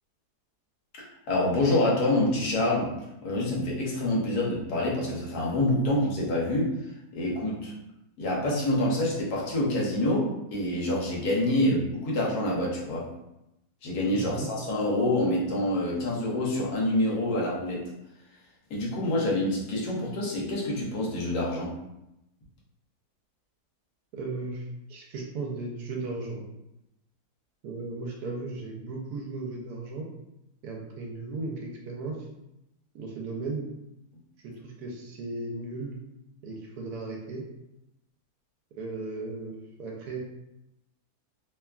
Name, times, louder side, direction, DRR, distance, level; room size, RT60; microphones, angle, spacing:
voice 1, 1.0-2.9 3.2-6.7 7.1-7.7 8.2-13.1 13.8-17.8 18.7-21.7, left 1 dB, 70° left, -4 dB, 1.2 m, -27 dB
voice 2, 11.4-11.8 14.1-14.5 24.1-26.4 27.6-30.1 30.6-32.3 32.9-33.7 34.4-36.0 36.4-37.4 38.8-40.2, right 3 dB, 75° right, 0 dB, 1.1 m, -36 dB
3.0 x 2.2 x 2.3 m, 0.89 s
omnidirectional pair, 1.7 m